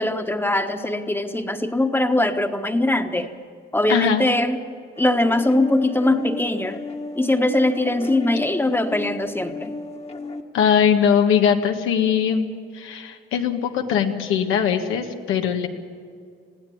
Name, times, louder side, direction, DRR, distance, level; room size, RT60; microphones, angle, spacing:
voice 1, 0.0-3.3 3.7-4.6 5.0-6.8 7.2-9.7, left 1 dB, 10° left, 7 dB, 1.3 m, -21 dB
voice 2, 3.9-4.3 10.5-12.5 12.7-15.7, left 8 dB, 90° left, 4 dB, 1.6 m, -20 dB
sound 1, 5.0-10.4, left 2 dB, 30° left, 1.5 m, -34 dB
20.5 x 15.5 x 8.7 m, 2.2 s
cardioid pair, 90°, 20 cm